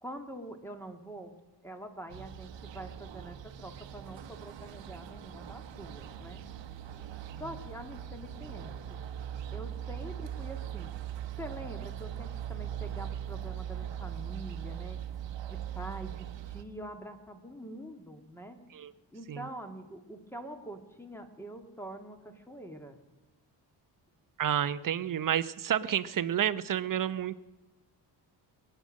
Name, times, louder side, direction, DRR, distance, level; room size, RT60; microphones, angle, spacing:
voice 1, 0.0-1.3 1.6-6.4 7.4-9.0 9.5-10.9 11.4-15.0 15.5-18.6 19.1-23.0, right 1 dB, 5° left, 5 dB, 1.9 m, -45 dB
sound 1, 2.1-16.6, right 10 dB, 75° right, 1.1 m, -40 dB
voice 2, 24.4-27.4, right 10 dB, 45° right, 14 dB, 0.8 m, -30 dB
23.0 x 9.1 x 6.4 m, 1.1 s
cardioid pair, 90°, 44 cm